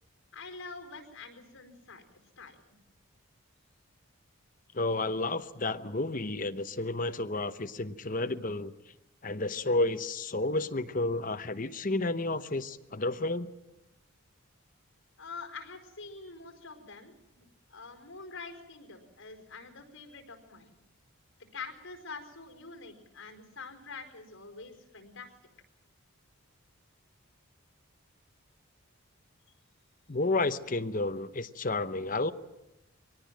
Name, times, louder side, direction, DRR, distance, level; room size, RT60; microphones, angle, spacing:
voice 1, 0.3-2.0 2.4-2.6 15.2-20.7 21.5-25.3, left 4 dB, 65° left, 4 dB, 4.6 m, -46 dB
voice 2, 4.7-8.7 9.2-13.5 30.1-32.3, left 2 dB, 40° left, 9 dB, 0.9 m, -31 dB
23.0 x 18.5 x 7.6 m, 0.92 s
head